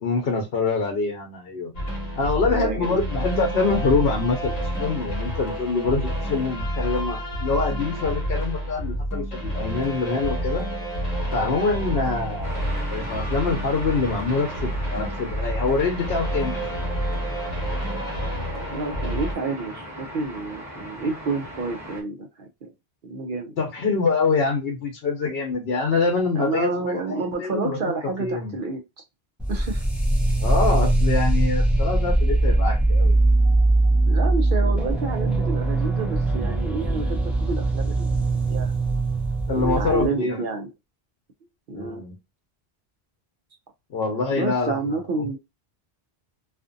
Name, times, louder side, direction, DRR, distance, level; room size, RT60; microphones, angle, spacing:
voice 1, 0.0-1.7 2.2-10.6 11.3-12.6 12.9-16.5 23.6-27.8 28.2-28.5 30.4-33.1 39.5-40.4 41.7-42.1 43.9-44.8 45.2-45.4, left 4 dB, 70° left, 0.9 m, -25 dB
sound 1, 1.7-19.3, equal, 40° left, 0.9 m, -29 dB
voice 2, 2.5-3.0 18.7-22.7 23.0-23.5 26.3-28.8 29.5-29.8 34.1-38.1 38.5-38.7 39.5-40.7 41.7-42.0 44.3-45.4, right 3 dB, 60° right, 0.7 m, -29 dB
sound 2, 12.4-22.0, equal, 15° right, 0.9 m, -38 dB
sound 3, 29.4-40.1, right 2 dB, ahead, 0.4 m, -21 dB
2.5 x 2.5 x 2.5 m
omnidirectional pair, 1.1 m